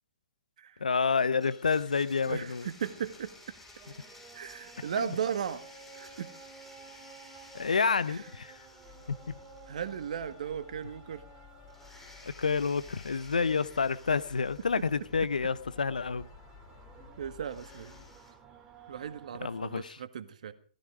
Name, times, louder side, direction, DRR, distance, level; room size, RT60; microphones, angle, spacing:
voice 1, 0.8-2.7 5.0-5.1 7.5-8.5 9.1-9.3 12.2-16.3 19.4-20.0, left 5 dB, 80° left, 0.8 m, -29 dB
Domestic sounds home sounds, 1.4-10.6 10.8-10.9 11.7-15.6 17.4-18.3, left 2 dB, 5° left, 7.3 m, -54 dB
sound 1, 1.7-19.8, right 5 dB, 15° right, 2.5 m, -55 dB
voice 2, 2.3-3.3 4.3-5.6 5.9-6.3 9.7-11.2 17.2-18.0 18.9-20.5, right 8 dB, 60° right, 1.8 m, -36 dB
sound 2, 8.8-18.1, left 10 dB, 40° left, 3.7 m, -55 dB
19.0 x 14.5 x 5.0 m
hypercardioid pair, 125°, 4 cm